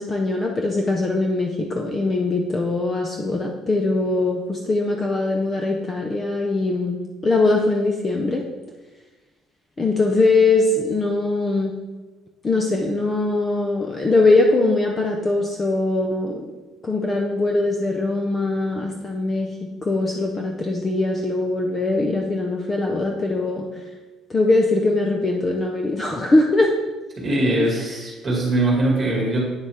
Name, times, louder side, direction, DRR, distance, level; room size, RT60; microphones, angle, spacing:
voice 1, 0.0-8.4 9.8-11.8 12.4-16.5 16.8-23.8 24.3-26.7 27.7-27.8, left 2 dB, 20° left, 2 dB, 0.5 m, -21 dB
voice 2, 27.2-29.4, right 1 dB, 20° right, -2 dB, 2.3 m, -21 dB
8.8 x 6.6 x 3.7 m, 1.2 s
cardioid pair, 180°, 0 cm